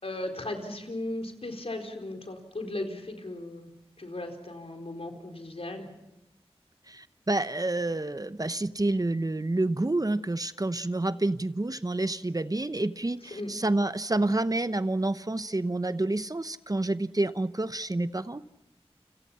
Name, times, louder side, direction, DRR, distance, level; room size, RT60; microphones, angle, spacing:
voice 1, 0.0-3.7 4.0-5.9 13.3-13.5, left 1 dB, 70° left, 4 dB, 4.4 m, -36 dB
voice 2, 6.9-18.4, right 2 dB, 35° right, 13 dB, 0.9 m, -28 dB
29.5 x 27.0 x 5.8 m, 0.85 s
wide cardioid pair, 45°, 11 cm